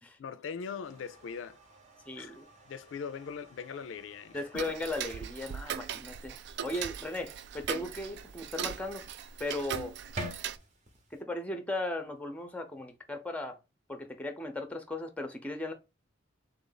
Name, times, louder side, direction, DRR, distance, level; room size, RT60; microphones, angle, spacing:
voice 1, 0.2-1.6 2.2-2.4 2.7-4.5, left 6 dB, 85° left, 0.4 m, -40 dB
sound 1, 0.8-11.2, right 1 dB, 40° right, 0.9 m, -49 dB
voice 2, 2.1-2.5 4.3-9.0 9.4-9.9 11.1-13.6 13.9-15.7, left 2 dB, 10° left, 0.6 m, -37 dB
Tick-tock, 4.6-10.6, right 9 dB, 65° right, 0.3 m, -39 dB
3.6 x 2.5 x 3.8 m
head